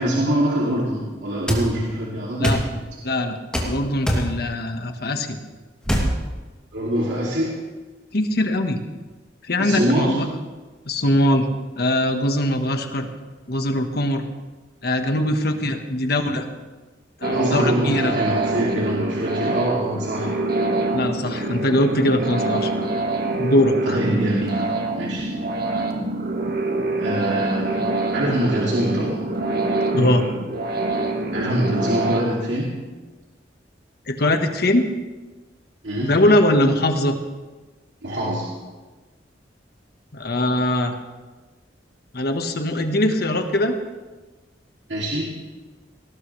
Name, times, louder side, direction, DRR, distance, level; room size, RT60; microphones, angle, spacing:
voice 1, 0.0-2.6 6.7-7.5 9.6-10.2 17.3-20.4 23.9-24.6 24.9-25.3 27.0-29.2 31.3-32.7 35.8-36.1 38.0-38.5 44.9-45.3, right 1 dB, 75° right, -5 dB, 2.8 m, -24 dB
sound 1, 1.5-1.7 2.4-2.7 3.5-3.7 4.1-4.3 5.9-6.1, equal, 5° left, 2.8 m, -21 dB
voice 2, 3.0-5.4 8.1-8.8 9.5-10.3 10.9-11.5 11.8-13.1 13.5-14.2 14.8-16.5 17.2-18.2 20.9-22.7 23.4-24.0 29.9-30.3 34.1-34.9 36.0-37.2 40.1-40.9 42.1-43.7, left 1 dB, 60° left, 6 dB, 1.5 m, -21 dB
sound 2, 17.2-32.2, right 2 dB, 60° right, 1.8 m, -25 dB
19.5 x 18.0 x 3.3 m, 1.3 s
head